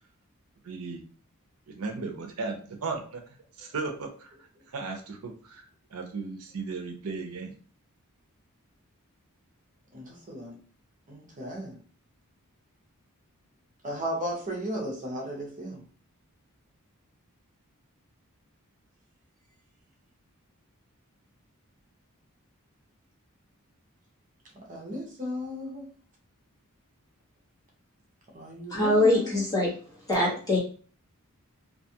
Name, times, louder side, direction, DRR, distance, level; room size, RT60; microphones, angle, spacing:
voice 1, 0.6-1.0 1.7-3.2 3.6-4.3 4.7-5.6 5.9-7.5, right 4 dB, 70° right, 4 dB, 0.5 m, -35 dB
voice 2, 9.9-10.6 11.1-11.8 13.8-15.8 24.7-25.9 28.3-29.4, equal, 35° right, -1 dB, 0.7 m, -35 dB
voice 3, 28.7-29.7 30.1-30.6, left 1 dB, 15° left, -5 dB, 1.1 m, -23 dB
2.5 x 2.3 x 2.7 m, 0.42 s
head